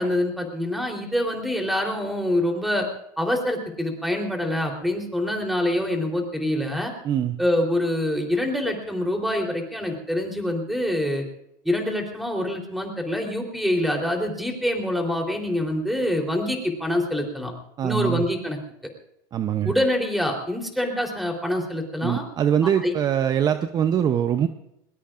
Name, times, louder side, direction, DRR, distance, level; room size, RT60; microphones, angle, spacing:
voice 1, 0.0-2.9 3.2-6.9 7.4-11.2 11.6-17.5 17.8-18.6 19.6-22.2 22.8-22.9, left 1 dB, ahead, 2 dB, 3.6 m, -25 dB
voice 2, 7.0-7.4 17.8-18.2 19.3-19.7 22.0-24.5, right 9 dB, 35° right, 9 dB, 0.7 m, -23 dB
21.0 x 19.5 x 2.5 m, 0.80 s
supercardioid pair, 115°, 11 cm